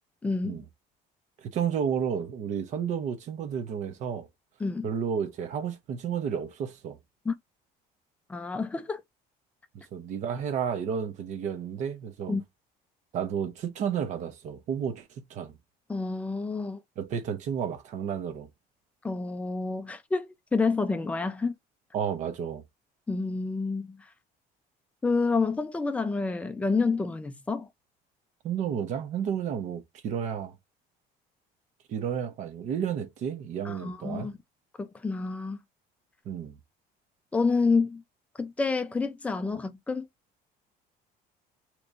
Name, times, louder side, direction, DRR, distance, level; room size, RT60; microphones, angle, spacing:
voice 1, 0.2-0.6 4.6-4.9 7.3-7.4 8.3-9.0 12.3-12.4 15.9-16.8 19.0-21.5 23.1-24.0 25.0-27.7 33.6-34.3 34.8-35.6 37.3-38.0 38.4-40.1, left 4 dB, 10° left, 0.4 m, -28 dB
voice 2, 1.4-4.3 4.8-7.0 9.9-12.4 13.1-15.5 17.0-18.5 21.9-22.6 28.4-30.5 31.9-34.3 36.2-36.6, right 8 dB, 45° right, 0.8 m, -31 dB
3.3 x 3.0 x 2.5 m
cardioid pair, 170°, 17 cm